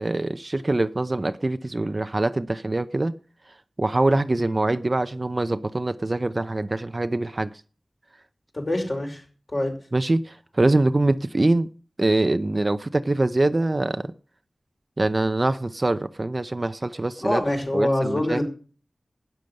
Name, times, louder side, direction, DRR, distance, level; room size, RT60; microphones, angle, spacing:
voice 1, 0.0-3.1 3.8-7.5 9.9-11.7 12.0-14.1 15.0-17.4 17.7-18.4, right 2 dB, 40° right, 0.6 m, -24 dB
voice 2, 8.5-9.2 9.5-9.7 17.2-18.4, left 1 dB, 40° left, 5.0 m, -25 dB
12.0 x 9.3 x 6.5 m
wide cardioid pair, 80°, 0 cm